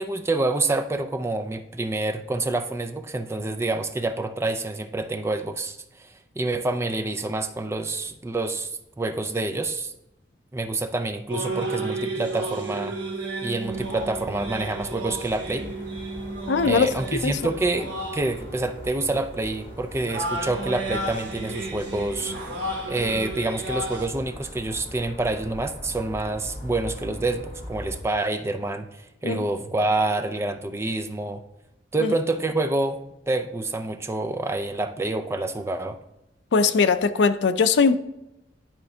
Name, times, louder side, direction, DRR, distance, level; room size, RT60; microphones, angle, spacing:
voice 1, 0.0-6.1 6.4-8.7 9.0-9.9 10.5-13.0 13.4-15.7 16.6-22.4 22.9-31.4 31.9-36.0, right 2 dB, 15° right, 7 dB, 0.4 m, -27 dB
sound 1, 11.3-24.1, right 2 dB, 75° right, 1.3 m, -33 dB
sound 2, 13.6-28.0, left 1 dB, 30° left, 1.1 m, -41 dB
voice 2, 16.5-16.9 17.2-17.4 29.2-29.4 32.0-32.1 36.5-38.0, left 5 dB, 70° left, 10 dB, 0.4 m, -20 dB
10.5 x 4.3 x 2.7 m, 0.87 s
head